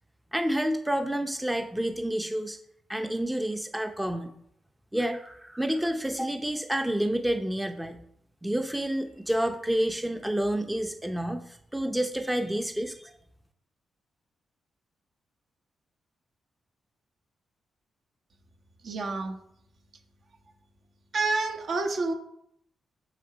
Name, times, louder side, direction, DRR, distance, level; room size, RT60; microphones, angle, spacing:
voice 1, 0.3-2.6 2.9-4.3 4.9-8.0 8.4-13.1, right 1 dB, 5° right, 6 dB, 0.7 m, -29 dB
voice 2, 18.8-19.4 21.1-22.1, right 3 dB, 55° right, 4 dB, 1.4 m, -28 dB
7.1 x 6.4 x 5.0 m, 0.73 s
cardioid pair, 85°, 0 cm